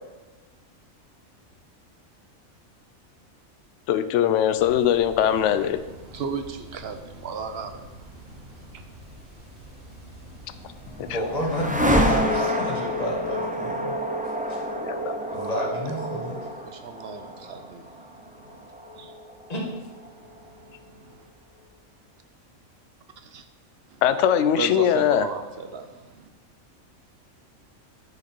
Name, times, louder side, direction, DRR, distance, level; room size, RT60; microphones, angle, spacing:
voice 1, 3.9-5.8 11.1-11.2 14.8-15.2 24.0-25.3, left 10 dB, 70° left, 11 dB, 0.8 m, -21 dB
sound 1, 4.5-11.7, right 1 dB, 40° right, 3.1 m, -46 dB
voice 2, 6.1-7.8 8.7-8.8 16.6-17.9 19.0-19.1 23.3-23.4 24.6-25.9 26.2-26.3, right 5 dB, 55° right, 7 dB, 0.8 m, -34 dB
sound 2, 10.3-20.4, equal, 10° right, 0.4 m, -28 dB
voice 3, 11.0-14.0 14.5-14.6 15.3-16.4 19.5-19.6, equal, 30° left, -2 dB, 1.8 m, -30 dB
9.5 x 5.1 x 4.5 m, 1.2 s
omnidirectional pair, 1.4 m